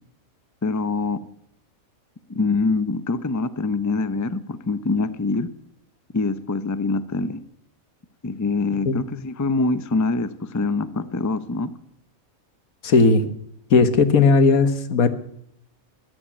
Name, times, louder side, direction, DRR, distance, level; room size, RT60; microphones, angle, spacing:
voice 1, 0.6-1.2 2.3-5.5 6.1-7.4 8.2-11.7, left 3 dB, 20° left, 13 dB, 0.5 m, -24 dB
voice 2, 12.8-13.3 13.7-15.1, left 4 dB, 80° left, 11 dB, 1.7 m, -16 dB
14.5 x 11.5 x 8.6 m, 0.72 s
omnidirectional pair, 1.5 m